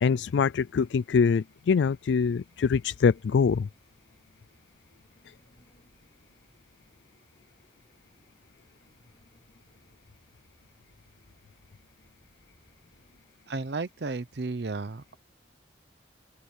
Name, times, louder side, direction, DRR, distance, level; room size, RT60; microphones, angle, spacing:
voice 1, 0.0-3.7, left 5 dB, 75° left, 0.3 m, -24 dB
sound 1, 2.5-13.2, equal, 30° left, 7.7 m, -65 dB
voice 2, 13.5-15.2, right 3 dB, 65° right, 0.7 m, -33 dB
open air
head